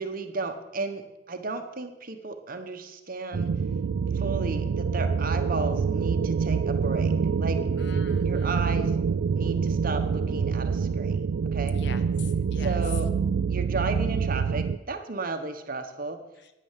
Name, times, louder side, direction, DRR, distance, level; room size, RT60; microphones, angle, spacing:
voice 1, 0.0-3.5 4.1-7.1 7.4-7.6 8.2-9.0 9.3-11.8 12.6-13.1 13.5-16.2, right 3 dB, 45° right, 7 dB, 1.2 m, -34 dB
sound 1, 3.3-14.8, right 6 dB, 70° right, 0.4 m, -26 dB
voice 2, 7.8-8.7 11.7-12.8 16.4-16.5, left 4 dB, 60° left, 10 dB, 1.1 m, -44 dB
10.5 x 10.0 x 7.5 m, 0.97 s
head